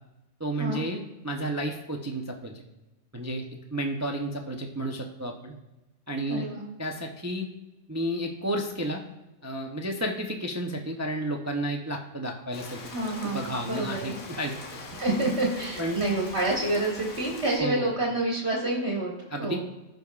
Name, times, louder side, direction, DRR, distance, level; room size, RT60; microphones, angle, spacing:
voice 1, 0.4-2.6 3.1-3.4 3.7-5.5 6.1-6.5 6.8-7.5 7.9-9.0 9.4-12.8 13.2-14.8 15.8-16.0 17.6-17.9 19.3-19.6, right 1 dB, 25° right, 2 dB, 0.3 m, -32 dB
voice 2, 6.3-6.6 12.9-14.1 15.0-19.1 19.4-19.6, right 2 dB, 50° right, -3 dB, 1.6 m, -28 dB
Rain, 12.5-17.6, left 3 dB, 90° left, 1.5 m, -42 dB
15.5 x 5.2 x 2.4 m, 1.0 s
omnidirectional pair, 1.4 m